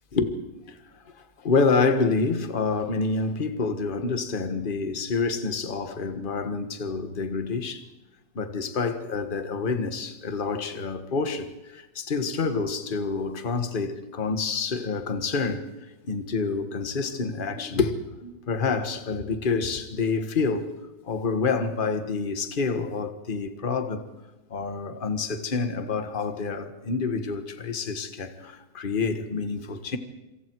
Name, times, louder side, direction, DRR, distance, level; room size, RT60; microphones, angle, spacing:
voice 1, 1.4-7.8 8.3-15.6 16.0-17.9 18.2-20.7 21.1-24.0 24.5-30.0, left 4 dB, 30° left, 1.5 m, -27 dB
27.0 x 25.5 x 4.7 m
omnidirectional pair, 2.0 m